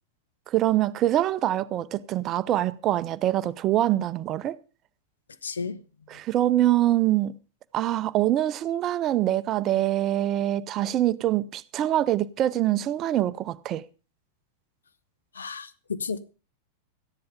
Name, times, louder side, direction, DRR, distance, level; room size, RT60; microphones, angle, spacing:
voice 1, 0.5-4.6 6.1-7.3 7.7-13.8, right 13 dB, 35° right, 0.6 m, -24 dB
voice 2, 5.4-5.8 15.3-16.2, left 5 dB, 70° left, 0.9 m, -32 dB
14.0 x 10.5 x 5.1 m
figure-of-eight pair, 90°, 0 cm